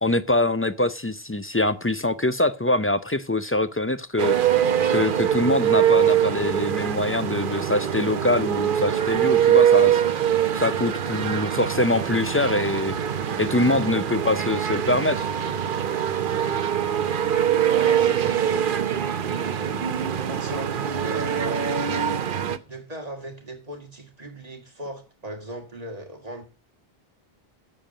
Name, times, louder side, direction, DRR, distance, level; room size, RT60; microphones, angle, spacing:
voice 1, 0.0-4.4 4.9-10.0 10.5-13.0 13.4-15.3, left 2 dB, 20° left, 0.3 m, -24 dB
sound 1, 4.2-22.6, right 9 dB, 60° right, 0.9 m, -23 dB
voice 2, 17.7-19.8 20.2-22.4 22.6-26.4, right 1 dB, 40° right, 2.1 m, -39 dB
8.8 x 7.2 x 7.5 m
omnidirectional pair, 1.0 m